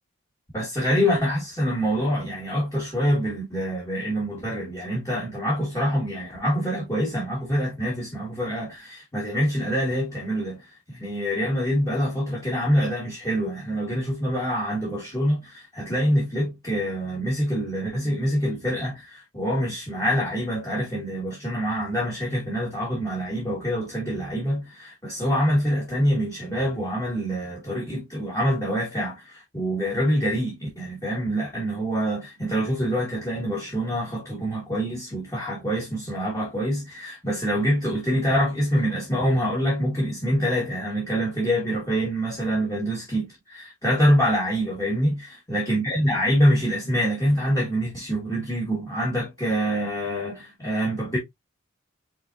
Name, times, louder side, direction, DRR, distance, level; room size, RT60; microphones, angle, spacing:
voice 1, 0.5-51.2, equal, 15° left, 1.5 m, -25 dB
5.5 x 3.6 x 2.5 m
head